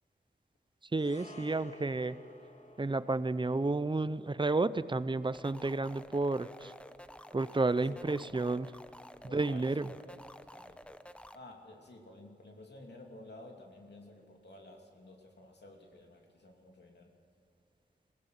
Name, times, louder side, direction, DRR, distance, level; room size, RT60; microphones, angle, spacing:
voice 1, 0.8-2.2 2.8-6.7 7.3-8.7 9.2-9.9, right 3 dB, 25° right, 15 dB, 0.6 m, -31 dB
sound 1, 0.9-9.4 9.7-9.9, left 1 dB, 40° left, 1.7 m, -57 dB
sound 2, 5.3-11.3, equal, 5° left, 0.8 m, -51 dB
voice 2, 9.2-10.8 11.3-17.1, left 1 dB, 70° left, 1 dB, 2.8 m, -53 dB
22.0 x 16.5 x 7.9 m, 2.5 s
wide cardioid pair, 90°, 18 cm